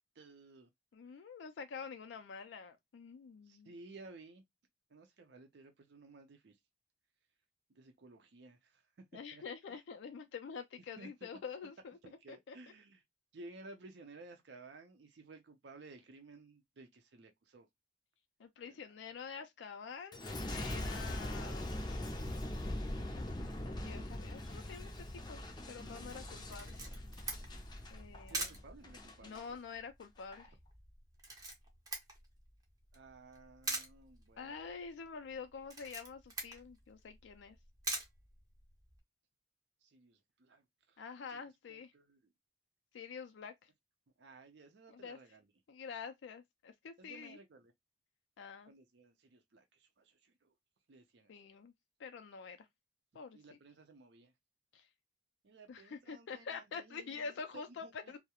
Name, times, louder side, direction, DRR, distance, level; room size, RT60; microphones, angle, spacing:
voice 1, 0.2-0.7 3.5-4.4 4.9-6.6 7.8-8.8 9.3-9.4 9.7-9.8 11.0-11.3 12.0-13.0 13.3-17.7 18.6-18.9 28.3-29.4 32.9-34.5 39.8-41.0 41.3-42.2 44.2-45.5 47.0-47.7 48.7-50.5 50.9-51.3 53.3-54.3 55.4-57.9, right 3 dB, 70° right, 0.5 m, -56 dB
voice 2, 0.9-3.7 9.1-12.0 12.3-12.6 18.4-20.2 20.5-22.0 23.7-25.4 25.7-26.7 27.9-28.6 29.2-30.5 34.4-37.6 41.0-41.9 42.9-43.7 44.9-45.2 45.7-47.4 48.4-48.7 51.3-51.7 52.0-52.7 53.1-53.6 54.7-54.9 55.7-58.2, left 5 dB, 85° left, 0.4 m, -47 dB
Boom, 20.1-29.5 30.0-30.5, left 1 dB, 25° left, 0.4 m, -42 dB
Camera, 26.5-39.0, right 2 dB, 20° right, 0.6 m, -46 dB
2.3 x 2.0 x 2.8 m
head